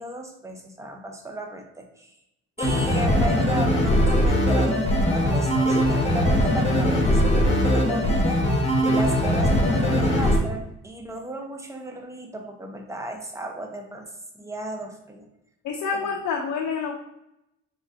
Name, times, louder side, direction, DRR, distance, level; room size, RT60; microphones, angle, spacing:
voice 1, 0.0-2.2 2.6-8.4 8.8-14.1 14.4-15.3 15.9-16.1, right 1 dB, 10° right, 2 dB, 0.7 m, -35 dB
sound 1, 2.6-10.4, equal, 20° left, 1.2 m, -21 dB
voice 2, 15.6-16.9, left 5 dB, 80° left, -1 dB, 0.7 m, -27 dB
4.0 x 3.5 x 2.6 m, 0.83 s
cardioid pair, 90°, 30 cm